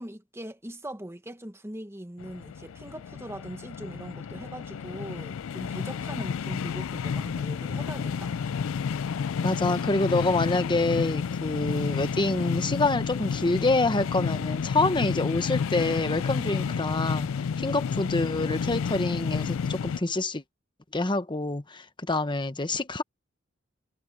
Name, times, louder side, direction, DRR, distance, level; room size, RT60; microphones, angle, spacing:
voice 1, 0.0-8.3, right 1 dB, 15° right, 1.4 m, -41 dB
sound 1, 2.2-20.0, left 6 dB, 85° left, 0.4 m, -31 dB
voice 2, 9.4-17.3 17.6-20.4 20.9-23.0, left 2 dB, 25° left, 1.1 m, -26 dB
head